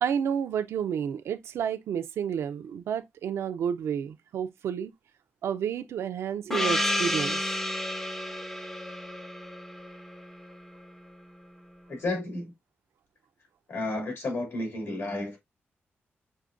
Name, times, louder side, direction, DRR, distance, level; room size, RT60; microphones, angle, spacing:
voice 1, 0.0-4.9 5.4-7.5, right 8 dB, 90° right, 0.5 m, -30 dB
Gong, 6.5-10.8, left 1 dB, 10° left, 0.5 m, -31 dB
voice 2, 11.9-12.5 13.7-15.4, left 2 dB, 65° left, 2.4 m, -32 dB
6.4 x 2.7 x 2.5 m
cardioid pair, 95°, 4 cm